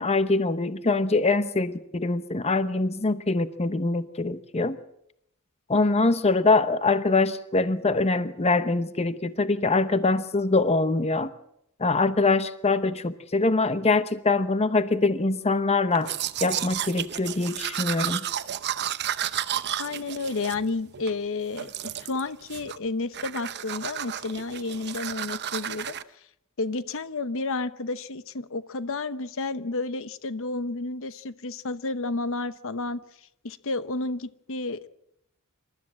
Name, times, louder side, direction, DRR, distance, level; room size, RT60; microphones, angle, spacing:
voice 1, 0.0-4.8 5.7-11.3 11.8-16.1 16.4-18.3, left 3 dB, 30° left, 12 dB, 0.8 m, -23 dB
Domestic sounds home sounds, 15.9-21.2 21.6-22.2 22.5-22.9 23.1-26.0, right 10 dB, 50° right, 0.8 m, -32 dB
voice 2, 19.8-26.0 26.6-33.0 33.4-34.9, left 3 dB, 65° left, 13 dB, 0.9 m, -31 dB
27.0 x 13.5 x 7.6 m, 0.79 s
head